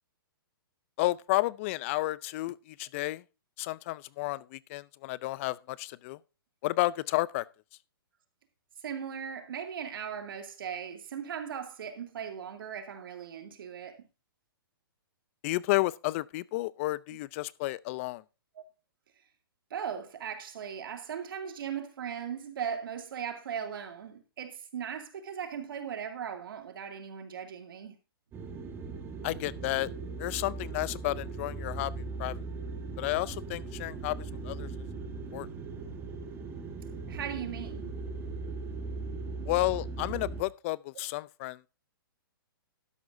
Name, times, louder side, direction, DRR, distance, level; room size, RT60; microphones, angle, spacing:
voice 1, 1.0-3.2 3.6-6.2 6.6-7.4 15.4-18.2 29.2-29.9 30.2-31.9 32.2-32.4 33.0-34.7 35.3-35.5 39.5-41.7, left 19 dB, 35° left, 0.4 m, -31 dB
voice 2, 8.8-14.0 18.6-18.7 19.7-28.0 37.1-37.9, right 8 dB, 70° right, 2.4 m, -38 dB
sound 1, 28.3-40.4, right 3 dB, 20° right, 1.5 m, -39 dB
12.5 x 10.5 x 2.6 m
hypercardioid pair, 145°, 12 cm